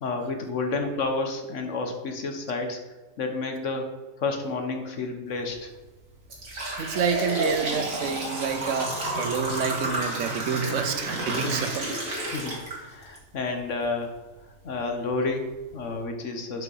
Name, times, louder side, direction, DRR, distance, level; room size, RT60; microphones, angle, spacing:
voice 1, 0.0-2.8 3.2-5.7 11.4-11.5 12.3-14.2 14.6-16.6, left 3 dB, 70° left, 4 dB, 1.3 m, -30 dB
sound 1, 5.3-5.5 6.0-13.2 13.6-13.7 14.6-14.7 15.2-15.3 15.7-15.9, right 1 dB, 90° right, 2.2 m, -31 dB
voice 2, 6.8-11.9, right 7 dB, 70° right, 8 dB, 1.0 m, -28 dB
5.7 x 5.6 x 5.5 m, 1.2 s
omnidirectional pair, 1.4 m